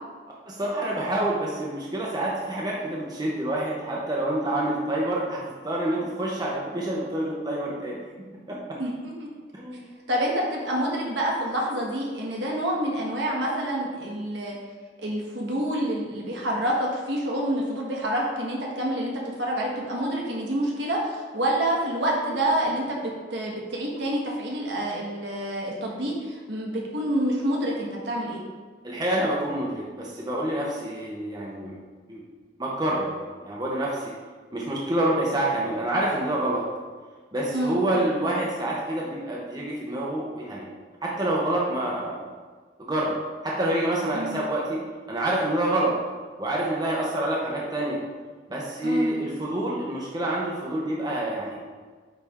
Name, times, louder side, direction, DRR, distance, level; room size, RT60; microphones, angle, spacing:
voice 1, 0.4-8.0 8.5-8.6 9.5-9.8 28.8-31.7 32.1-32.2 32.6-34.1 34.5-36.7 37.3-40.7 41.0-42.2 42.8-43.1 43.4-44.8 45.1-46.0 46.4-48.0 48.5-51.6, right 1 dB, 20° right, -4 dB, 0.8 m, -27 dB
voice 2, 8.7-9.3 10.1-14.6 15.0-19.1 19.4-28.4 37.5-37.8 44.1-44.4 48.8-49.1, right 1 dB, 70° right, -2 dB, 1.4 m, -27 dB
8.9 x 3.4 x 3.6 m, 1.5 s
head